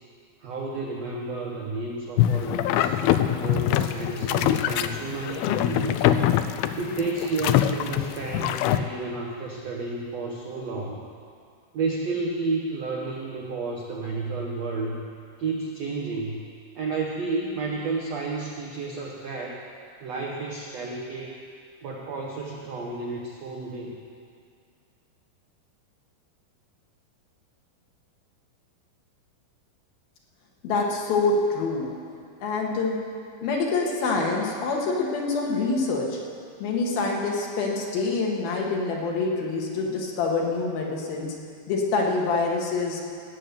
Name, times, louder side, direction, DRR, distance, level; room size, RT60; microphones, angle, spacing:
voice 1, 0.4-3.0 3.4-6.1 6.8-11.0 11.7-15.0 15.4-16.4 16.7-19.6 20.0-21.4 21.8-23.9, right 3 dB, 80° right, -1 dB, 1.4 m, -31 dB
sound 1, 2.2-8.8, left 11 dB, 85° left, 2.4 m, -24 dB
voice 2, 30.6-31.9 32.4-33.0 33.4-36.2 36.6-41.3 41.7-43.0, left 3 dB, 65° left, -1 dB, 3.4 m, -26 dB
17.5 x 8.6 x 6.8 m, 2.2 s
omnidirectional pair, 4.7 m